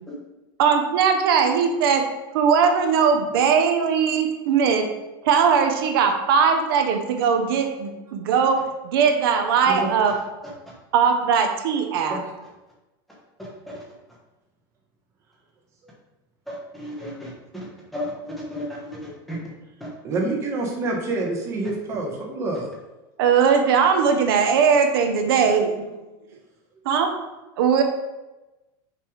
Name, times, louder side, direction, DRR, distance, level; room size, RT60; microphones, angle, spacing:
voice 1, 0.6-2.1 2.3-4.9 5.2-10.2 10.9-12.2 23.2-26.0 26.8-27.1 27.6-27.8, right 6 dB, 80° right, 5 dB, 0.8 m, -20 dB
voice 2, 16.5-17.6 17.9-18.6 18.9-19.0 19.3-19.4, equal, ahead, -5 dB, 1.1 m, -32 dB
voice 3, 20.0-22.7, right 2 dB, 25° right, 0 dB, 1.1 m, -27 dB
5.8 x 3.3 x 5.0 m, 1.1 s
supercardioid pair, 175°, 12 cm